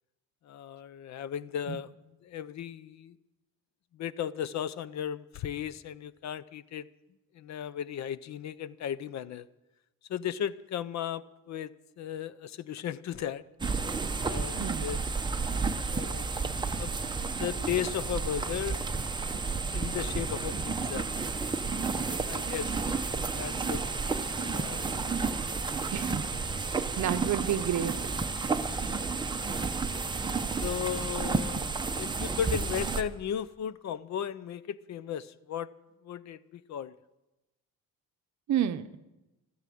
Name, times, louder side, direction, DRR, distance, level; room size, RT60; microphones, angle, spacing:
voice 1, 0.5-1.9 2.2-3.1 4.0-6.8 7.3-9.5 10.1-11.7 12.0-13.4 14.2-15.0 15.9-16.5 16.7-16.9 17.4-18.8 19.7-21.1 21.9-23.0 23.3-23.8 24.4-25.1 28.7-28.9 30.6-35.7 36.0-36.9, left 9 dB, 50° left, 18 dB, 0.5 m, -36 dB
sound 1, 13.6-33.0, right 4 dB, 10° right, 0.7 m, -31 dB
voice 2, 25.9-26.2 27.0-27.9 38.5-38.9, right 10 dB, 50° right, 11 dB, 0.8 m, -29 dB
13.5 x 12.5 x 7.6 m, 1.0 s
cardioid pair, 155°, 36 cm